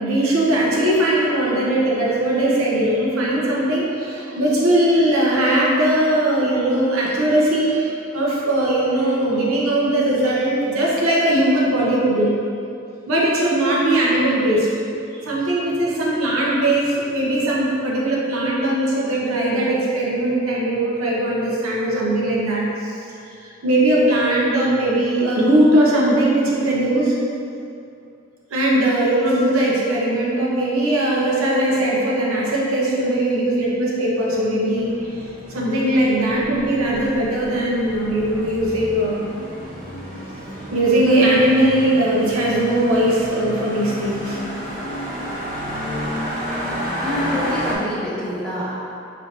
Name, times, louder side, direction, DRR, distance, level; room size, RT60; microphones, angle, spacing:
voice 1, 0.0-12.3 13.1-14.7 15.1-23.0 23.4-27.2 28.5-35.0 35.5-39.3 40.7-44.4, right 1 dB, 85° right, -4 dB, 0.8 m, -19 dB
sound 1, 34.7-47.8, equal, 40° right, 1.2 m, -31 dB
voice 2, 46.7-48.7, equal, 5° left, -8 dB, 0.5 m, -27 dB
4.3 x 3.1 x 2.8 m, 2.6 s
head